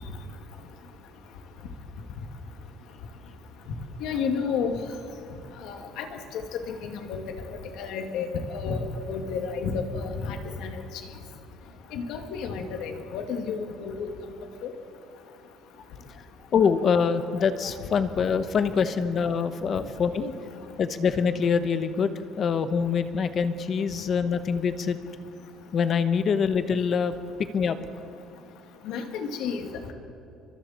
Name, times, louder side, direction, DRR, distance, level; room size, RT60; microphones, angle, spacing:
voice 1, 4.0-4.7 5.6-6.1 6.7-7.2 7.8-10.8 11.9-14.1 14.6-14.7 28.9-29.9, left 5 dB, 65° left, 4 dB, 2.5 m, -31 dB
voice 2, 16.5-20.3 20.8-25.0 25.7-27.1 27.5-27.8, left 6 dB, 35° left, 10 dB, 1.1 m, -25 dB
30.0 x 24.5 x 4.5 m, 2.7 s
cardioid pair, 170°, 0 cm